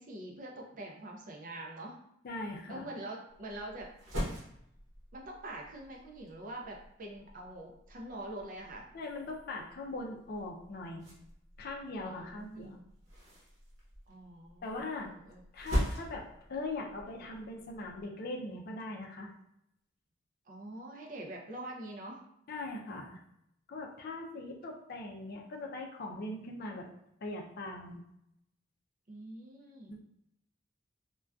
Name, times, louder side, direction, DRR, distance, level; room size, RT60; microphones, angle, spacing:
voice 1, 0.0-2.0 2.7-3.9 5.1-8.9 12.1-12.8 14.1-15.4 20.5-22.2 29.1-30.0, right 1 dB, 45° right, 0 dB, 0.4 m, -45 dB
voice 2, 2.2-2.9 8.9-11.1 11.6-12.8 14.6-15.1 15.5-19.3 22.5-23.2 23.7-26.9 27.2-28.0 29.9-30.0, left 2 dB, 55° left, 1 dB, 0.4 m, -40 dB
sound 1, 3.3-18.0, equal, 70° right, 0.9 m, -42 dB
2.5 x 2.2 x 2.2 m, 0.76 s
head